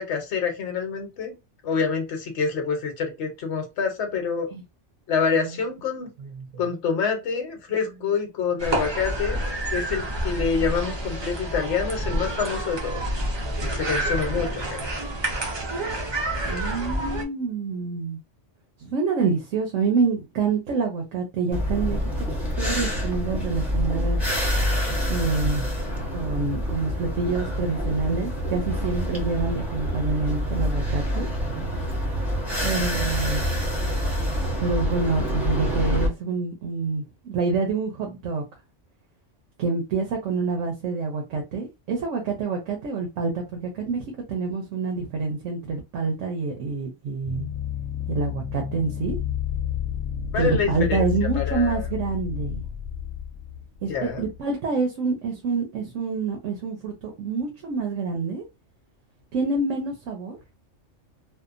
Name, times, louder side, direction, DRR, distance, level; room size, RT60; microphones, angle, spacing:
voice 1, 0.0-1.3 1.6-4.5 5.1-6.1 6.6-9.4 9.7-13.0 13.6-14.8 50.3-51.1 51.4-51.8 53.9-54.2, left 5 dB, 65° left, 1.0 m, -27 dB
sound 1, 8.6-17.2, right 1 dB, 45° right, 0.3 m, -28 dB
voice 2, 16.4-18.2 18.8-22.3 22.6-24.2 25.1-25.7 26.1-31.3 32.6-33.4 34.6-38.4 39.6-47.5 48.1-49.2 50.3-52.6 53.8-58.4 59.3-60.4, right 4 dB, 80° right, 1.0 m, -27 dB
sound 2, 21.5-36.1, equal, ahead, 0.9 m, -26 dB
sound 3, 47.2-54.4, left 9 dB, 90° left, 1.0 m, -30 dB
2.7 x 2.1 x 2.4 m
omnidirectional pair, 1.3 m